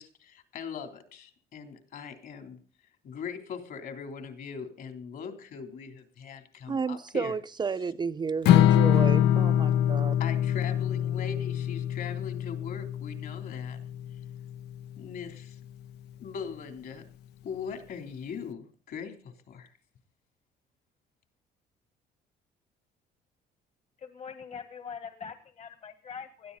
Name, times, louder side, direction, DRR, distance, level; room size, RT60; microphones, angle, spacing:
voice 1, 0.0-2.6 3.0-7.3 10.2-13.8 15.0-15.6 16.2-17.0 17.4-19.7, left 6 dB, 60° left, 3.7 m, -40 dB
voice 2, 6.7-10.1, right 5 dB, 25° right, 0.6 m, -32 dB
Strum, 8.5-14.7, left 11 dB, 80° left, 0.8 m, -24 dB
voice 3, 24.0-26.6, left 6 dB, 40° left, 1.6 m, -43 dB
20.0 x 13.5 x 4.2 m
cardioid pair, 110°, 17 cm